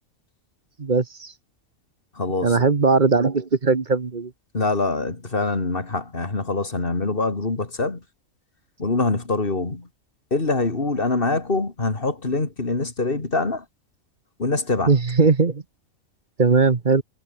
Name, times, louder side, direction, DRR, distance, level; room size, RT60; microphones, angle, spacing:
voice 1, 0.8-1.3 2.4-4.3 14.9-15.6 16.4-17.0, right 4 dB, 35° right, 1.3 m, -19 dB
voice 2, 2.2-2.6 4.5-8.0 8.8-9.9 10.3-13.6 14.4-14.9, left 3 dB, 40° left, 3.0 m, -24 dB
omnidirectional pair, 1.5 m